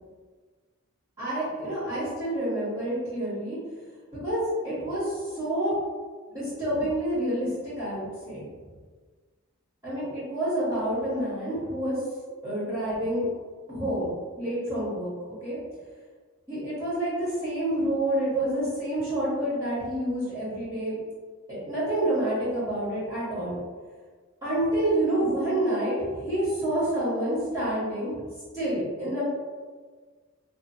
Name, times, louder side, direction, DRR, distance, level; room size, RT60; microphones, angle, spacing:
voice 1, 1.2-3.6 4.2-5.7 6.3-8.5 9.8-12.0 12.4-13.2 13.7-15.6 16.5-21.0 21.5-23.6 24.4-28.1 28.5-29.2, right 1 dB, 15° right, -13 dB, 1.1 m, -28 dB
2.6 x 2.5 x 2.6 m, 1.5 s
head